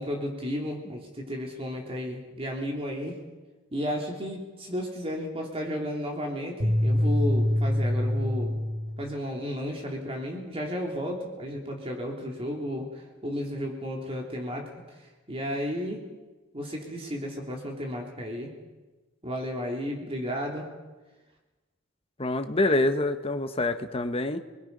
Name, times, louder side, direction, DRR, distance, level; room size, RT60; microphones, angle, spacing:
voice 1, 0.0-3.2 3.7-8.6 9.0-14.7 15.3-16.0 16.5-18.5 19.2-20.7, equal, 30° right, 0 dB, 3.1 m, -33 dB
sound 1, 6.6-9.1, left 1 dB, 60° right, 2.0 m, -25 dB
voice 2, 22.2-24.4, left 2 dB, 30° left, 8 dB, 1.3 m, -26 dB
28.5 x 21.0 x 5.5 m, 1.2 s
head